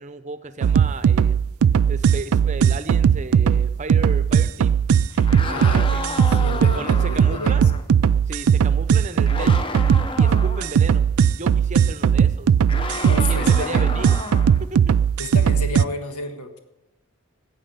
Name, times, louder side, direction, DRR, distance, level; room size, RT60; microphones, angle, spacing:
voice 1, 0.0-1.4 1.9-4.8 5.4-6.0 6.6-7.7 8.3-9.7 10.2-11.1 11.4-12.5 13.3-14.2 14.5-14.9, right 3 dB, 35° right, 12 dB, 0.7 m, -34 dB
sound 1, 0.6-15.8, right 7 dB, 75° right, 0.3 m, -18 dB
sound 2, 5.1-7.8 9.3-10.7 12.7-14.7, left 2 dB, 25° left, 0.7 m, -31 dB
voice 2, 5.4-7.7 13.0-13.9 15.2-16.6, left 3 dB, 90° left, 6 dB, 1.6 m, -32 dB
15.0 x 8.4 x 6.8 m, 0.99 s
head